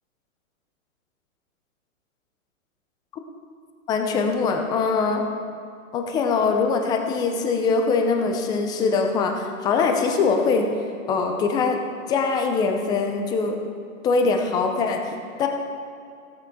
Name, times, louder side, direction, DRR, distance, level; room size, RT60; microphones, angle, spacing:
voice 1, 3.9-5.2 5.9-10.7 11.1-11.8 12.1-13.6 14.0-15.1 15.4-15.5, left 4 dB, 10° left, 4 dB, 0.4 m, -22 dB
18.0 x 8.2 x 3.6 m, 2.4 s
hypercardioid pair, 135°, 41 cm